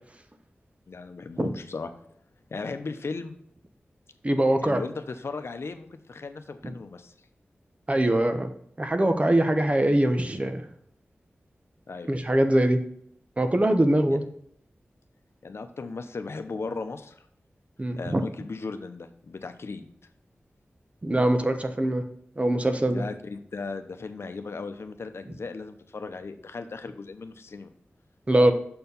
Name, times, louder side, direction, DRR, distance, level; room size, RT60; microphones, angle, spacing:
voice 1, 0.9-1.9 2.5-3.3 4.6-7.1 11.9-12.1 15.4-17.1 18.0-19.9 22.9-27.7, left 4 dB, 70° left, 8 dB, 0.7 m, -36 dB
voice 2, 4.2-4.8 7.9-8.5 8.8-10.6 12.1-12.8 13.4-14.2 17.8-18.2 21.0-22.0 22.4-23.0 28.3-28.5, right 1 dB, 30° right, 7 dB, 0.9 m, -22 dB
6.7 x 4.5 x 5.3 m, 0.68 s
wide cardioid pair, 75°, 4 cm